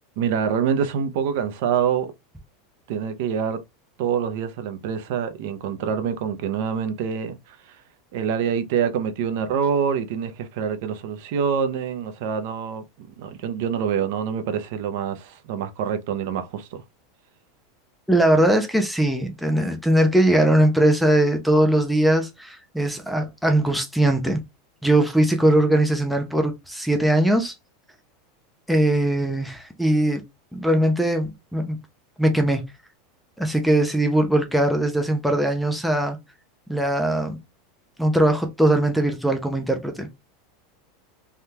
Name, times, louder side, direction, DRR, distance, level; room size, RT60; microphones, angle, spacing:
voice 1, 0.2-2.1 2.9-3.6 4.0-7.8 8.1-16.8, right 7 dB, 50° right, 0.5 m, -26 dB
voice 2, 18.1-24.4 24.8-27.5 28.7-30.2 30.5-31.8 32.2-32.6 33.4-36.2 36.7-37.4 38.0-40.1, right 1 dB, ahead, 0.4 m, -20 dB
3.4 x 2.2 x 2.8 m
supercardioid pair, 175°, 0 cm